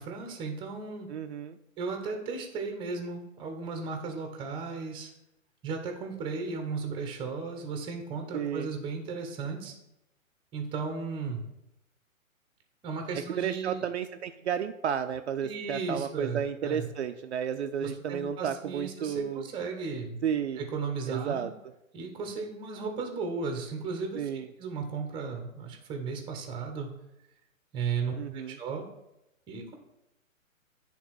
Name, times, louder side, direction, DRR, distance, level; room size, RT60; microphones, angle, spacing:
voice 1, 0.0-1.1 1.8-5.1 5.6-9.7 10.5-11.4 12.8-13.9 15.4-16.9 17.8-20.2 20.6-21.5 21.9-24.3 24.6-26.9 27.7-28.8 29.5-29.7, right 4 dB, 10° right, 4 dB, 0.9 m, -35 dB
voice 2, 1.1-1.6 8.3-8.7 13.4-19.5 20.2-20.6 21.1-21.5 24.1-24.5 28.2-28.6, right 8 dB, 55° right, 7 dB, 0.5 m, -32 dB
9.6 x 3.5 x 4.7 m, 0.87 s
hypercardioid pair, 135°, 41 cm